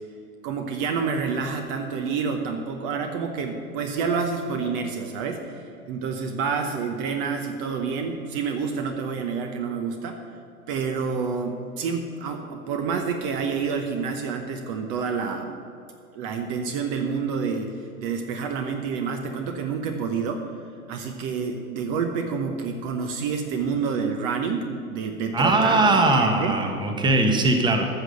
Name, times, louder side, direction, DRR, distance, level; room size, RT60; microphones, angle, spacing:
voice 1, 0.4-10.2 10.7-15.5 16.1-20.5 20.9-26.6, right 5 dB, 35° right, 5 dB, 1.0 m, -28 dB
voice 2, 25.3-27.9, right 2 dB, 10° right, 4 dB, 1.1 m, -20 dB
13.5 x 6.3 x 6.8 m, 2.7 s
figure-of-eight pair, 105°, 44 cm